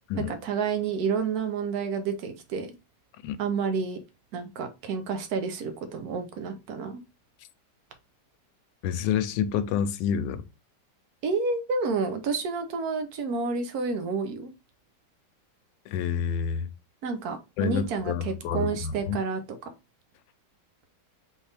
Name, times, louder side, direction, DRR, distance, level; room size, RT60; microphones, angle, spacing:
voice 1, 0.2-2.7 3.4-4.0 4.3-7.0 11.2-14.5 17.0-19.4, right 5 dB, 65° right, 1.3 m, -29 dB
voice 2, 8.8-10.4 15.9-16.7 17.6-19.2, left 8 dB, 85° left, 1.3 m, -28 dB
4.2 x 3.6 x 3.3 m
omnidirectional pair, 1.9 m